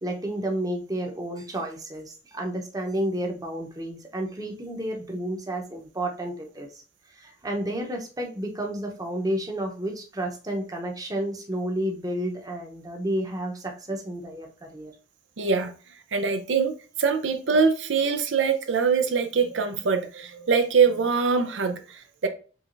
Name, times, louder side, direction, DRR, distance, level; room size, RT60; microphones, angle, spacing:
voice 1, 0.0-6.8 7.2-14.9, right 1 dB, 20° right, 0.8 m, -31 dB
voice 2, 15.4-15.7 16.1-22.3, right 5 dB, 80° right, 0.6 m, -23 dB
4.7 x 3.4 x 2.5 m
head